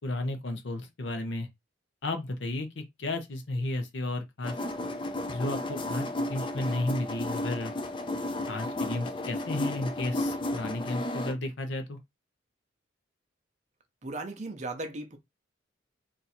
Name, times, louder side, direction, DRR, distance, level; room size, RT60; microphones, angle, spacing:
voice 1, 0.0-1.5 2.0-4.5 5.3-7.7 8.5-12.0, left 2 dB, 65° left, 0.8 m, -33 dB
sound 1, 4.4-11.3, left 1 dB, 25° left, 0.4 m, -33 dB
voice 2, 14.0-15.2, right 2 dB, 40° right, 0.7 m, -36 dB
2.6 x 2.5 x 4.2 m
head